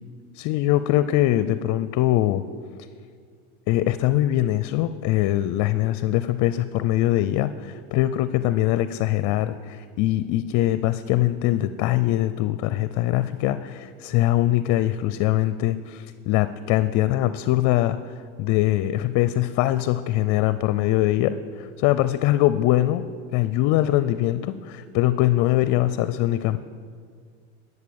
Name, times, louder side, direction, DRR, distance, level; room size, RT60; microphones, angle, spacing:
voice 1, 0.4-2.4 3.7-23.1 23.3-26.6, left 14 dB, 50° left, 14 dB, 0.6 m, -22 dB
13.0 x 6.9 x 8.7 m, 2.1 s
hypercardioid pair, 105°, 37 cm